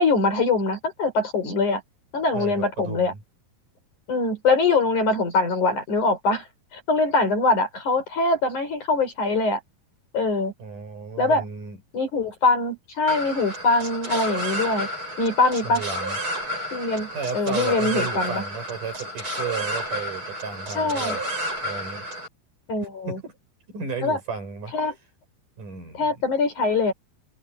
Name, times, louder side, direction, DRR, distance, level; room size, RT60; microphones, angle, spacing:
voice 1, 0.0-1.8 2.1-3.1 4.1-6.4 6.7-9.6 10.1-10.5 11.2-11.4 11.9-14.9 15.2-15.8 16.7-18.4 20.7-21.2 22.7-23.2 24.0-24.2 24.7-24.9 26.0-26.9, left 3 dB, 50° left, 6.1 m, -23 dB
voice 2, 2.3-3.2 10.6-11.8 15.6-16.2 17.1-21.2 21.6-22.1 23.1-23.3 23.7-24.7 25.6-26.2, right 6 dB, 55° right, 7.5 m, -33 dB
sound 1, 13.1-22.3, equal, 30° right, 8.1 m, -31 dB
omnidirectional pair, 4.5 m